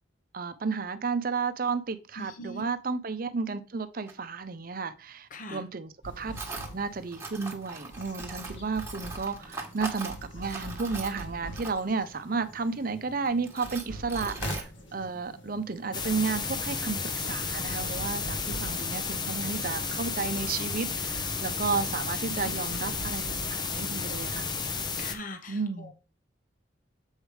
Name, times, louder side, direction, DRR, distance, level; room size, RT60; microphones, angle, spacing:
voice 1, 0.3-6.3 6.7-23.2 23.5-24.5 25.5-25.9, right 4 dB, 50° right, 0.6 m, -32 dB
voice 2, 2.2-2.7 5.3-5.6 22.3-22.5 25.0-25.9, equal, 45° left, 0.9 m, -41 dB
Tools, 4.1-4.2 6.3-6.7 7.1-12.0 12.7-12.8 13.3-14.6, right 3 dB, 15° right, 1.3 m, -40 dB
sound 1, 6.0-24.3, equal, 75° left, 1.7 m, -44 dB
sound 2, 15.9-25.1, left 4 dB, 25° left, 0.6 m, -32 dB
7.3 x 4.9 x 3.2 m
head